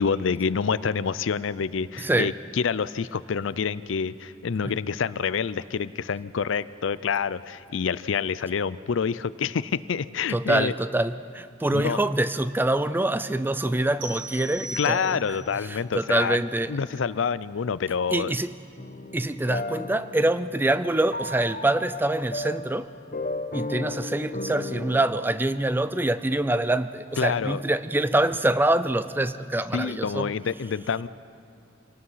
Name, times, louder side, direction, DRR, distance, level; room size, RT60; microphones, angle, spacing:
voice 1, 0.0-10.7 11.7-12.0 14.8-18.3 27.2-27.6 29.7-31.1, left 6 dB, 75° left, 17 dB, 0.5 m, -27 dB
voice 2, 2.0-2.3 10.3-15.2 15.7-16.7 18.1-18.5 19.1-22.9 23.5-30.3, right 1 dB, 10° right, 14 dB, 0.4 m, -25 dB
sound 1, 14.0-15.5, equal, 70° right, 2.1 m, -38 dB
sound 2, 18.8-25.0, left 2 dB, 45° left, 1.0 m, -35 dB
26.0 x 18.5 x 5.7 m, 2.5 s
head